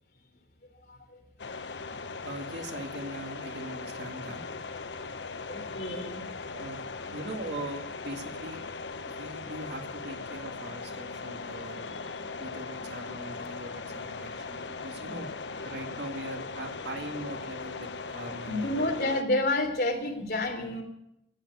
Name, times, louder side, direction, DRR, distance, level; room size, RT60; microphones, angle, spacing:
sound 1, 1.4-19.2, left 4 dB, 90° left, 0.9 m, -39 dB
voice 1, 2.2-4.4 6.5-8.6 9.0-12.0 12.4-15.3 15.6-18.9, right 1 dB, 80° right, 4 dB, 2.1 m, -41 dB
voice 2, 5.5-6.3 11.8-12.0 15.1-15.3 18.4-20.8, left 2 dB, 60° left, 2 dB, 3.3 m, -30 dB
15.0 x 9.2 x 9.4 m, 0.81 s
head